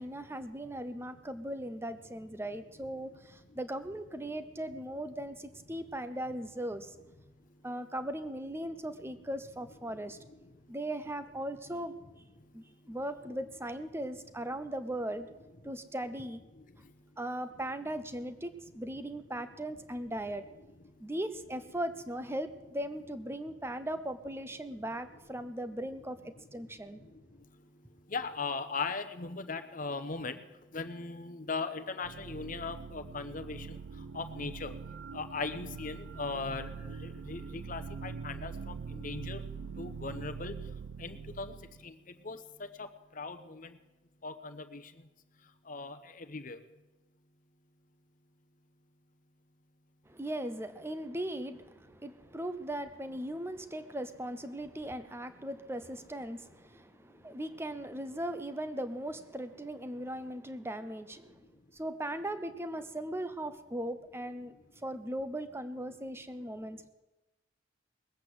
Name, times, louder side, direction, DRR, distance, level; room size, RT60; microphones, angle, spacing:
voice 1, 0.0-6.9 7.6-10.2 10.7-11.9 12.5-15.3 15.6-16.4 17.2-20.4 21.0-27.0 50.1-61.4 61.7-64.5 64.8-66.9, right 1 dB, 15° right, 11 dB, 0.8 m, -38 dB
voice 2, 28.1-30.4 30.7-33.7 34.1-34.7 35.1-36.7 37.0-39.4 39.8-40.5 41.0-41.5 41.8-41.9 42.2-42.4 43.2-43.7 44.2-44.8 45.7-46.6, left 4 dB, 45° left, 9 dB, 0.9 m, -38 dB
sound 1, 32.0-41.9, right 5 dB, 70° right, 0.5 m, -43 dB
20.0 x 8.1 x 7.9 m, 1.1 s
head